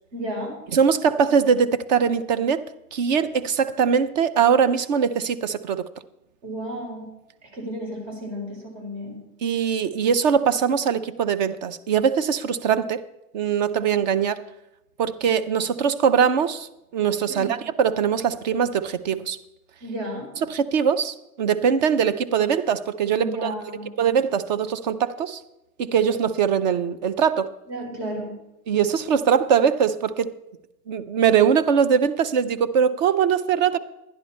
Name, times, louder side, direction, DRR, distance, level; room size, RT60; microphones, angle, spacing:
voice 1, 0.1-0.6 6.4-7.1 7.5-9.2 17.3-17.6 19.8-20.3 23.1-23.9 27.7-28.3, right 1 dB, 55° right, 4.5 m, -32 dB
voice 2, 0.7-2.6 2.9-5.8 9.4-13.0 13.3-14.4 15.0-19.4 20.4-23.5 24.0-25.4 25.8-27.5 28.7-30.3 30.9-33.8, right 7 dB, 30° right, 0.4 m, -21 dB
11.0 x 10.5 x 4.3 m
hypercardioid pair, 120°, 47 cm